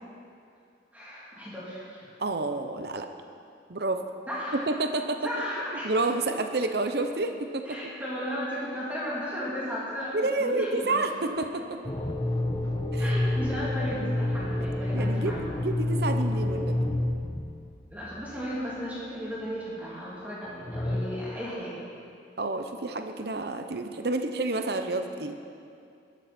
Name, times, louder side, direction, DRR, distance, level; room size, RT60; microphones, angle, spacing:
voice 1, 0.9-2.1 4.3-4.6 5.2-5.9 7.6-11.2 13.0-15.6 17.9-21.8, equal, 10° right, -8 dB, 3.0 m, -35 dB
voice 2, 2.2-3.1 3.7-4.0 4.7-5.2 5.7-7.8 10.1-11.8 12.9-13.2 14.9-15.3 15.6-16.9 22.4-25.4, right 2 dB, 60° right, 6 dB, 0.8 m, -29 dB
sound 1, 11.8-18.4 20.6-21.0, left 1 dB, 25° left, 0.9 m, -28 dB
19.5 x 13.5 x 4.4 m, 2.5 s
head